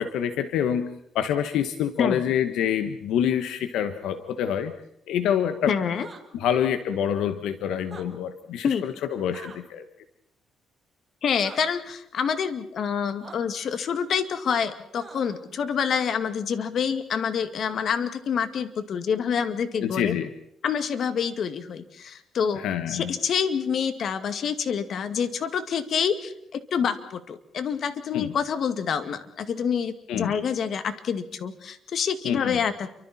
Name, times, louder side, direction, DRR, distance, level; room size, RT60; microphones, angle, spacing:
voice 1, 0.0-4.7 5.1-5.7 6.3-9.8 19.8-20.3 22.5-23.1 28.1-28.3 30.1-30.3 32.2-32.6, left 9 dB, 85° left, 9 dB, 1.4 m, -26 dB
voice 2, 5.7-6.1 8.6-8.8 11.2-20.2 20.6-32.9, left 7 dB, 60° left, 9 dB, 2.1 m, -27 dB
sound 1, 5.9-6.2 7.8-8.1 9.3-9.6 11.4-11.6 13.2-13.4 15.0-15.4, right 4 dB, 35° right, 4.3 m, -43 dB
29.5 x 24.5 x 4.4 m, 0.77 s
cardioid pair, 90°, 0 cm